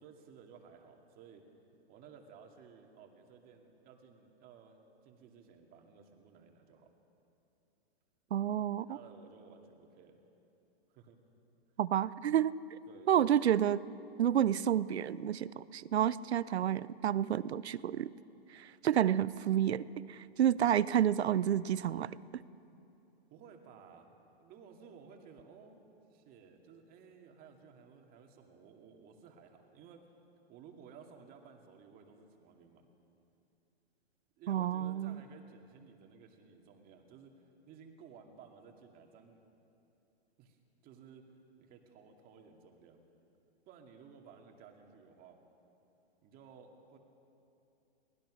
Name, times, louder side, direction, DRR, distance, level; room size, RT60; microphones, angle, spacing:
voice 1, 0.0-1.4 1.9-7.0 8.9-10.2 10.9-11.2 12.9-13.3 23.3-25.8 26.1-30.0 30.5-32.9 34.4-39.4 40.4-40.6 40.8-41.3 41.6-43.0 43.7-45.4 46.2-47.0, right 6 dB, 30° right, 3 dB, 2.4 m, -56 dB
voice 2, 8.3-9.0 11.8-12.6 13.1-13.8 14.2-18.1 18.5-22.1 34.5-35.2, right 10 dB, 80° right, 19 dB, 0.7 m, -30 dB
23.0 x 19.0 x 6.4 m, 2.8 s
hypercardioid pair, 135°, 32 cm